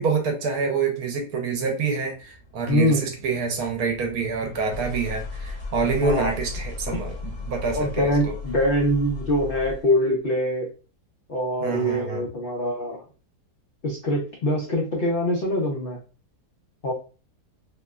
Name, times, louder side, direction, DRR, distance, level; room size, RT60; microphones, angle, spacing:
voice 1, 0.0-8.4 11.6-12.2, right 4 dB, 70° right, 3 dB, 1.1 m, -27 dB
sound 1, 2.1-10.0, left 3 dB, 60° left, 0.9 m, -36 dB
voice 2, 2.7-3.1 6.0-6.4 6.9-7.0 7.8-10.7 11.3-13.0 13.8-16.0 16.8-16.9, equal, 75° left, -2 dB, 0.5 m, -24 dB
3.0 x 2.2 x 2.3 m, 0.34 s
omnidirectional pair, 1.8 m